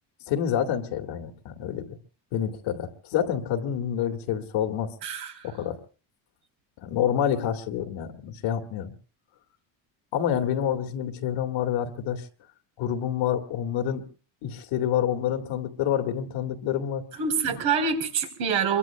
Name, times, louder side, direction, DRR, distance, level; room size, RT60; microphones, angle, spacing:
voice 1, 0.3-1.9 2.3-4.9 5.4-5.8 6.8-8.9 10.1-12.2 12.8-14.1 14.4-17.0 17.5-17.6, left 9 dB, 75° left, 5 dB, 2.1 m, -28 dB
voice 2, 5.0-5.5 17.2-18.8, right 6 dB, 75° right, 3 dB, 4.4 m, -26 dB
27.0 x 23.5 x 2.2 m, 0.36 s
cardioid pair, 120°, 47 cm